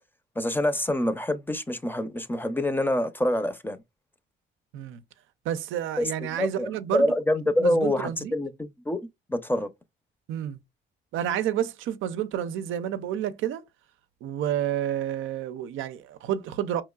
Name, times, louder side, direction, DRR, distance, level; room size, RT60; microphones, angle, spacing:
voice 1, 0.4-3.8 6.0-9.0 9.3-9.7, left 1 dB, 10° left, 0.5 m, -26 dB
voice 2, 5.4-7.1 7.6-8.3 10.3-10.6 11.1-13.6 14.2-16.8, right 10 dB, 85° right, 0.5 m, -29 dB
4.5 x 3.0 x 2.3 m
cardioid pair, 90°, 20 cm